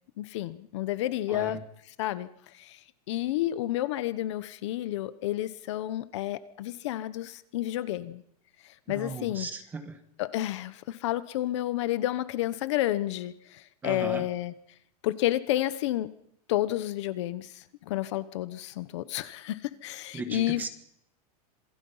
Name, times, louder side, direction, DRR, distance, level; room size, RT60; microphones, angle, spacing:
voice 1, 0.2-1.6 2.0-2.3 2.6-2.8 3.1-8.2 8.9-9.5 10.2-14.5 15.0-16.1 16.5-20.6, left 14 dB, 45° left, 14 dB, 1.0 m, -30 dB
voice 2, 1.3-1.6 8.9-10.0 13.8-14.2 20.1-20.7, right 3 dB, 10° right, 7 dB, 1.4 m, -37 dB
27.0 x 21.5 x 5.6 m, 0.74 s
supercardioid pair, 180°, 20 cm